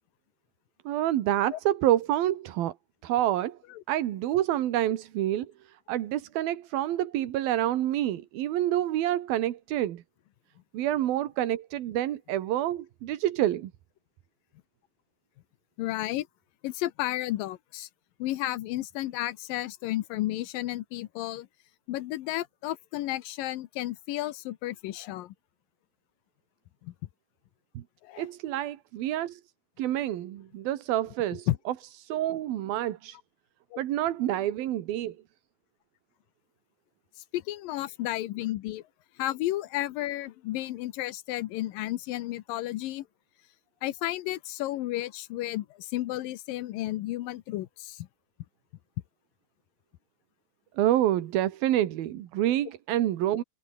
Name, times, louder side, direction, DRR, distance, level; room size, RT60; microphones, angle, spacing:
voice 1, 0.9-2.7 3.0-3.6 3.9-10.0 10.7-13.7 27.8-27.9 28.2-29.4 29.8-31.5 32.0-33.2 33.8-35.2 50.8-53.4, right 13 dB, 90° right, 3.3 m, -28 dB
voice 2, 15.8-16.3 16.6-17.9 18.2-21.5 21.9-25.3 26.8-26.9 28.0-28.3 31.5-31.6 33.7-33.8 37.3-38.8 39.2-43.1 43.8-48.1, left 15 dB, 75° left, 2.6 m, -32 dB
omnidirectional pair, 4.1 m